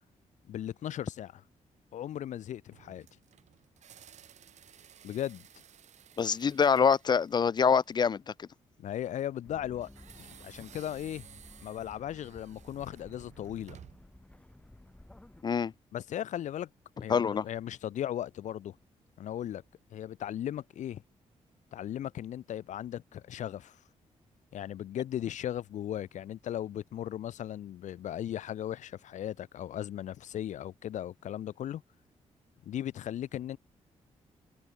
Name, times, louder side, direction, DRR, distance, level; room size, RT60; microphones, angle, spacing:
voice 1, 0.5-1.4 1.9-3.1 5.0-5.5 8.8-9.9 10.2-11.3 11.6-13.8 15.9-16.7 17.0-18.7 19.2-19.6 19.9-21.0 21.7-23.8 24.5-31.8 32.6-33.6, left 11 dB, 85° left, 2.3 m, -37 dB
sound 1, 2.7-8.1 9.8-14.2, right 9 dB, 75° right, 7.4 m, -56 dB
voice 2, 6.2-8.5 15.4-15.7 17.1-17.4, left 6 dB, 35° left, 0.4 m, -25 dB
sound 2, 9.4-15.4, left 1 dB, 10° left, 4.9 m, -54 dB
cardioid pair, 100°, 12 cm